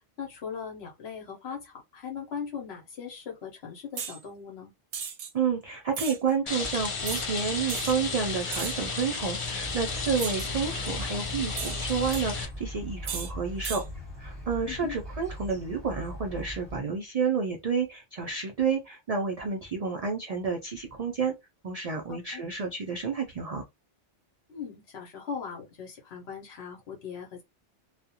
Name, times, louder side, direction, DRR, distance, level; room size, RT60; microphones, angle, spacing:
voice 1, 0.2-4.7 14.7-15.0 22.1-22.4 24.5-27.4, left 7 dB, 65° left, 1.0 m, -39 dB
sound 1, 4.0-4.2 4.9-5.3 5.9-6.2 7.1-7.3 7.7-7.9 8.5-8.9 10.2-10.6 11.6-12.2 13.0-13.3 13.6-13.8, right 7 dB, 90° right, 0.9 m, -35 dB
voice 2, 5.3-13.8 14.2-21.3 21.6-23.6, right 5 dB, 60° right, 0.4 m, -30 dB
Rain, 6.5-12.4, left 4 dB, 45° left, 0.4 m, -33 dB
sound 2, 9.6-16.8, equal, ahead, 1.1 m, -40 dB
2.3 x 2.1 x 2.7 m
omnidirectional pair, 1.2 m